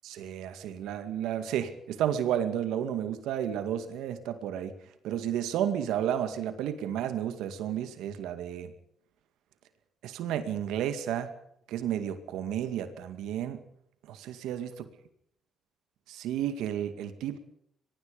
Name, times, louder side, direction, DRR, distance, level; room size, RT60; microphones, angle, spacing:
voice 1, 0.0-4.7 5.0-8.7 10.0-11.3 11.7-13.6 14.1-14.7 16.1-17.4, right 10 dB, 90° right, 10 dB, 2.3 m, -32 dB
23.5 x 22.0 x 5.2 m, 0.72 s
cardioid pair, 90°, 0 cm